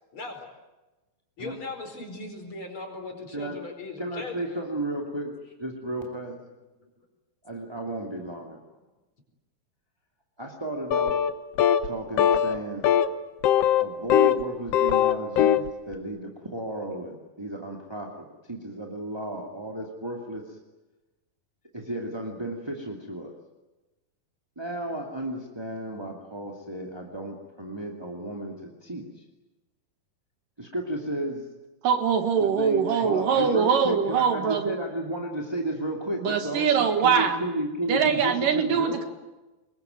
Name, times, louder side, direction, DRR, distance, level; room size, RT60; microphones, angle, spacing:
voice 1, 0.1-0.5 1.4-4.4 6.8-6.9, left 3 dB, 35° left, 3 dB, 5.4 m, -38 dB
voice 2, 4.0-5.3 5.6-6.4 7.4-8.6 10.4-11.2 11.8-12.8 13.8-20.6 21.7-23.3 24.5-29.2 30.6-31.4 32.4-39.0, right 1 dB, 10° right, 0 dB, 1.6 m, -33 dB
sound 1, 10.9-11.3 11.6-11.9 12.2-12.6 12.8-13.1 13.4-14.4 14.7-15.7, left 10 dB, 90° left, 1.3 m, -20 dB
voice 3, 31.8-34.8 36.2-37.4 37.9-39.1, right 7 dB, 65° right, 8 dB, 3.2 m, -23 dB
26.0 x 22.0 x 9.3 m, 1.1 s
omnidirectional pair, 4.3 m